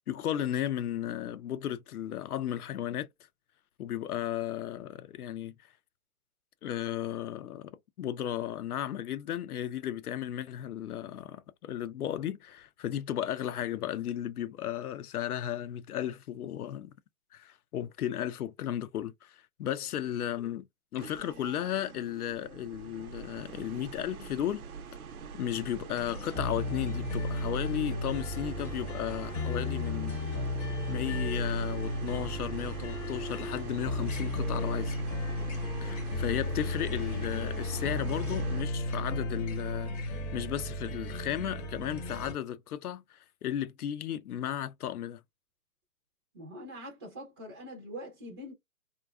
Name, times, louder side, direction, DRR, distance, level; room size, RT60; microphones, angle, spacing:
voice 1, 0.1-3.1 3.8-5.5 6.6-16.9 17.3-20.7 20.9-24.6 25.3-30.2 30.9-35.0 35.8-45.2, left 11 dB, 85° left, 0.5 m, -35 dB
sound 1, 21.0-38.6, right 6 dB, 80° right, 0.6 m, -44 dB
sound 2, 26.0-42.3, left 1 dB, 30° left, 0.9 m, -34 dB
voice 2, 46.3-48.5, equal, 15° right, 0.4 m, -43 dB
2.4 x 2.2 x 2.2 m
hypercardioid pair, 145°, 43 cm